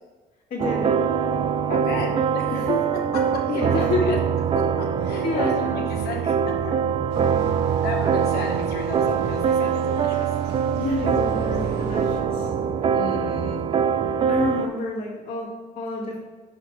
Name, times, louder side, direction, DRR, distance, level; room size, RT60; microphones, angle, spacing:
voice 1, 0.5-1.0 2.5-2.8 3.5-4.0 5.2-5.9 10.7-12.5 14.3-15.5 15.8-16.2, left 3 dB, 55° left, -9 dB, 2.3 m, -28 dB
sound 1, 0.6-14.7, right 7 dB, 35° right, 0.4 m, -23 dB
voice 2, 1.7-2.6 3.1-4.2 4.7-6.3 7.2-7.4 7.8-10.4 12.9-13.6, left 4 dB, 70° left, -1 dB, 1.6 m, -33 dB
sound 2, 7.1-12.2, right 2 dB, 80° right, 1.0 m, -40 dB
5.8 x 4.1 x 6.0 m, 1.3 s
cardioid pair, 110°, 17 cm